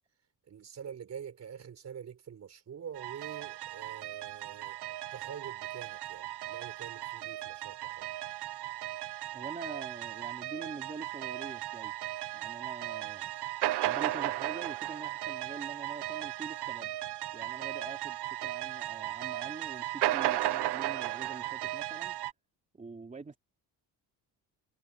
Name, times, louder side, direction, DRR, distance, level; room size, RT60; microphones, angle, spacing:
voice 1, 0.5-8.1, right 8 dB, 40° right, 5.6 m, -46 dB
sound 1, 2.9-22.3, right 15 dB, 75° right, 1.1 m, -36 dB
voice 2, 9.3-11.9 12.3-13.3 13.8-16.9 17.3-22.2 22.7-23.4, right 4 dB, 20° right, 3.1 m, -45 dB
cardioid pair, 155°, 40 cm